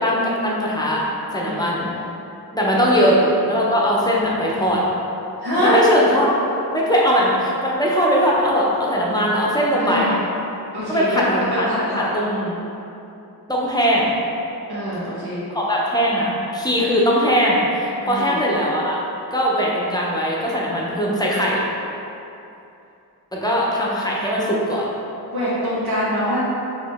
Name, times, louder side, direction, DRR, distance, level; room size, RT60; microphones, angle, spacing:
voice 1, 0.0-1.0 1.3-1.9 2.5-4.8 5.6-6.3 6.7-10.1 10.9-11.7 11.9-12.3 13.5-14.1 15.5-19.0 19.3-21.6 23.3-24.9, equal, 10° left, -5 dB, 0.7 m, -20 dB
voice 2, 5.4-5.8 9.8-10.2 10.7-11.2 11.5-12.5 14.6-15.4 18.0-18.3 25.3-26.4, equal, 80° right, -9 dB, 1.5 m, -24 dB
4.9 x 3.0 x 3.5 m, 2.8 s
wide cardioid pair, 100°, 38 cm